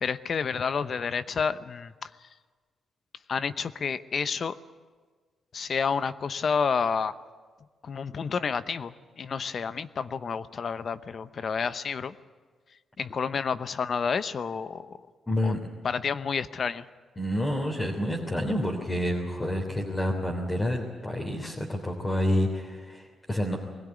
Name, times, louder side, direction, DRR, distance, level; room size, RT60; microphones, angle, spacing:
voice 1, 0.0-2.1 3.3-4.5 5.5-7.1 7.8-12.1 13.0-14.9 15.4-15.6 15.8-16.8, left 6 dB, 55° left, 14 dB, 0.8 m, -30 dB
voice 2, 15.3-15.6 17.2-23.6, left 1 dB, 25° left, 0 dB, 3.3 m, -28 dB
21.5 x 16.5 x 9.7 m, 1.5 s
cardioid pair, 75°, 0 cm